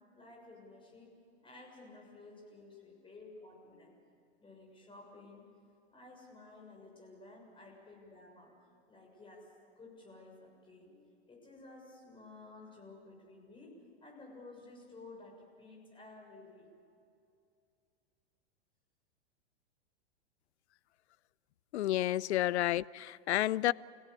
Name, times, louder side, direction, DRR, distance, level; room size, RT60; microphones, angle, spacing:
voice 1, 0.1-4.1 4.4-5.5 5.9-8.5 8.9-9.5 9.8-13.7 14.0-16.7 22.2-22.3, left 2 dB, 15° left, 6.9 m, -54 dB
voice 2, 21.7-23.7, left 14 dB, 75° left, 0.6 m, -30 dB
29.0 x 17.0 x 8.3 m
hypercardioid pair, 125°, 33 cm